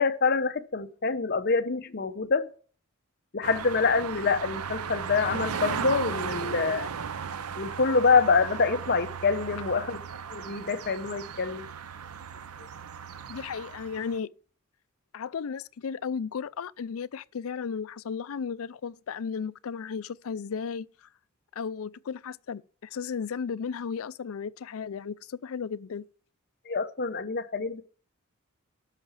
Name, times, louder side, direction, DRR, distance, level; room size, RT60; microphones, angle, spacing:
voice 1, 0.0-2.5 3.3-6.9 7.6-10.0 10.3-11.6 26.7-27.8, left 4 dB, 45° left, 0.8 m, -26 dB
sound 1, 3.4-14.2, right 6 dB, 85° right, 0.7 m, -36 dB
voice 2, 13.3-14.3 15.1-20.9 21.5-26.0, left 6 dB, 70° left, 0.4 m, -34 dB
13.0 x 5.8 x 7.0 m
head